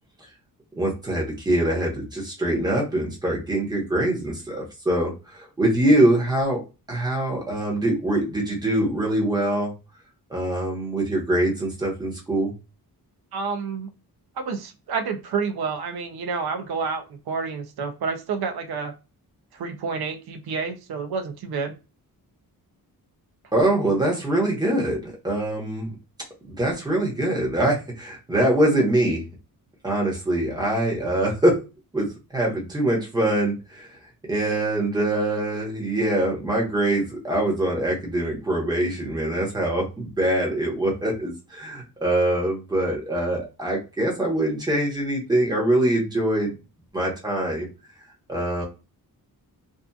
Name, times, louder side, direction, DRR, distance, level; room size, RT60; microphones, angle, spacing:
voice 1, 0.8-6.6 6.9-9.7 10.3-12.5 23.5-25.9 26.6-29.2 29.8-31.5 31.9-33.9 34.3-46.5 46.9-47.7 48.3-48.6, right 1 dB, 10° right, -3 dB, 1.0 m, -23 dB
voice 2, 13.3-13.9 14.4-18.9 19.5-21.7, right 5 dB, 85° right, 6 dB, 0.6 m, -29 dB
2.7 x 2.4 x 2.3 m, 0.28 s
wide cardioid pair, 135°, 37 cm